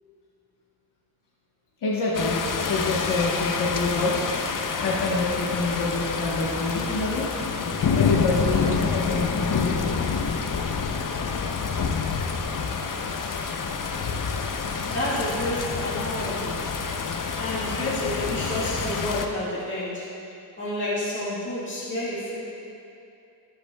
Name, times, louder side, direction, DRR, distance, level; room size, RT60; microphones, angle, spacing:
voice 1, 1.8-2.4 2.7-4.2 4.8-7.3 7.9-10.0, left 2 dB, 70° left, -6 dB, 1.2 m, -26 dB
sound 1, 2.1-19.3, left 5 dB, 45° left, 0.6 m, -27 dB
voice 2, 14.8-16.7 17.4-20.2 20.6-22.4, left 1 dB, 25° left, -9 dB, 1.8 m, -30 dB
13.0 x 8.6 x 2.3 m, 2.7 s
wide cardioid pair, 100°, 43 cm